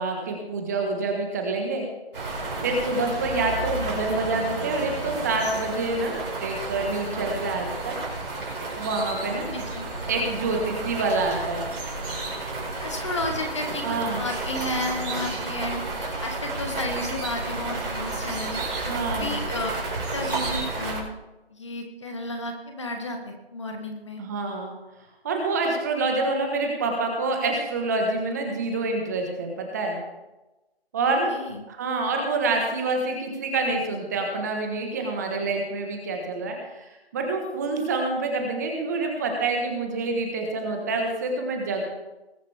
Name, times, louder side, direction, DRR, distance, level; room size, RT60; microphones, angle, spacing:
voice 1, 0.0-1.9 2.6-8.0 8.7-9.5 10.1-11.6 13.8-14.2 18.8-19.3 24.2-24.7 25.2-30.0 30.9-31.4 31.6-41.8, right 3 dB, 15° right, 2 dB, 1.4 m, -27 dB
sound 1, 2.1-21.0, right 2 dB, 55° right, 5.2 m, -31 dB
voice 2, 9.5-9.9 12.8-19.7 20.0-21.1 21.5-24.2 31.3-31.6, left 2 dB, 30° left, 4 dB, 1.1 m, -33 dB
20.5 x 8.8 x 3.5 m, 1.0 s
figure-of-eight pair, 165°, 32 cm